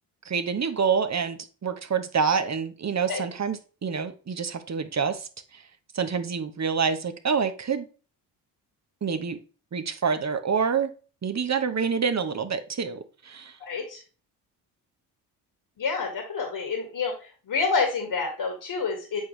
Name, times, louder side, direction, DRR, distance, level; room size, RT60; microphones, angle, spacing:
voice 1, 0.2-5.3 5.9-7.9 9.0-9.4 9.7-10.9 11.2-13.0 13.2-13.5, right 6 dB, 35° right, 10 dB, 1.2 m, -27 dB
voice 2, 13.6-14.0 15.8-17.1 17.5-19.2, left 4 dB, 50° left, 3 dB, 2.2 m, -28 dB
8.6 x 4.7 x 3.3 m, 0.36 s
hypercardioid pair, 45°, 48 cm